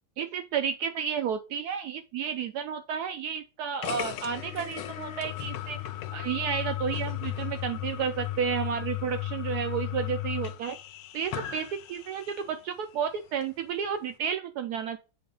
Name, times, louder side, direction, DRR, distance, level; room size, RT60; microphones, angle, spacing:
voice 1, 0.2-5.8 6.1-10.8 11.1-15.0, right 7 dB, 85° right, 7 dB, 0.8 m, -32 dB
sound 1, 3.8-12.6, left 13 dB, 85° left, 1.5 m, -35 dB
7.9 x 2.9 x 5.3 m, 0.32 s
omnidirectional pair, 2.2 m